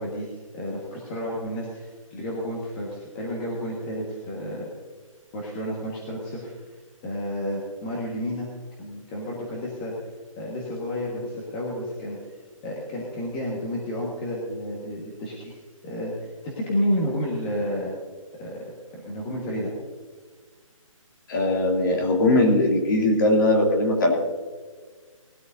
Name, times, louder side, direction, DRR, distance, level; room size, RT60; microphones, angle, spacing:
voice 1, 0.0-4.7 5.3-8.5 8.8-9.9 10.4-12.3 12.6-15.6 15.8-18.0 18.4-18.6 19.0-19.7, equal, 15° left, -3 dB, 1.5 m, -31 dB
voice 2, 21.3-24.2, left 1 dB, 35° left, 1 dB, 2.6 m, -20 dB
19.0 x 13.0 x 2.7 m, 1.5 s
hypercardioid pair, 170°, 18 cm